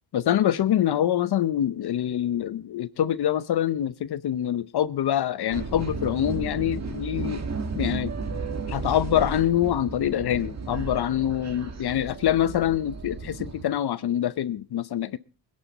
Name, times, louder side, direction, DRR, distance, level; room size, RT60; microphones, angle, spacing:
voice 1, 0.1-7.4 7.8-8.1 8.7-15.2, left 11 dB, 60° left, 0.8 m, -25 dB
sound 1, 5.5-13.6, right 4 dB, 35° right, 1.8 m, -34 dB
21.0 x 11.0 x 4.1 m
cardioid pair, 120°, 45 cm